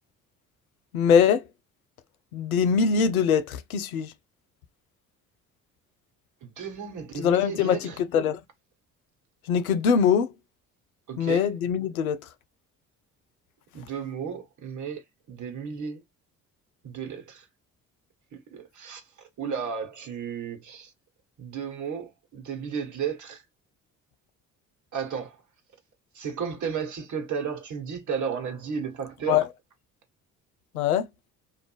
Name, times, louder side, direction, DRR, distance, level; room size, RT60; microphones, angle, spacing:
voice 1, 0.9-1.4 2.3-4.1 7.2-8.4 9.5-10.3 11.2-12.2 29.3-29.5 30.7-31.1, left 7 dB, 75° left, 0.6 m, -22 dB
voice 2, 6.4-8.0 11.1-11.5 13.7-15.0 15.3-16.0 16.8-17.5 18.3-19.0 19.4-20.9 21.4-23.4 24.9-25.4 26.1-29.4, right 6 dB, 40° right, 1.4 m, -33 dB
3.2 x 2.5 x 3.1 m
figure-of-eight pair, 50°, 43 cm